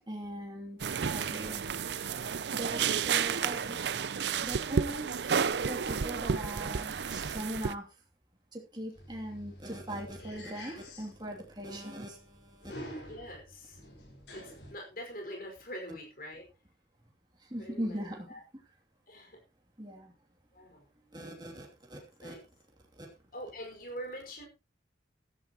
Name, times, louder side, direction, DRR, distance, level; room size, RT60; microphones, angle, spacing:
voice 1, 0.1-0.8 1.1-2.2 2.5-3.8 4.4-5.2 5.5-7.9 8.5-12.7 17.4-18.3 19.8-20.1 21.1-22.4 23.0-23.1, right 1 dB, 25° right, 0 dB, 2.8 m, -40 dB
sound 1, 0.8-7.7, right 6 dB, 75° right, 0.6 m, -31 dB
sound 2, 8.9-14.7, equal, 80° left, 4.9 m, -48 dB
voice 2, 13.0-13.8 14.3-16.4 17.6-18.0 18.3-18.4 19.1-19.4 20.5-20.9 22.2-22.4 23.3-24.5, equal, 50° left, 1 dB, 5.2 m, -44 dB
15.5 x 12.5 x 3.0 m, 0.28 s
head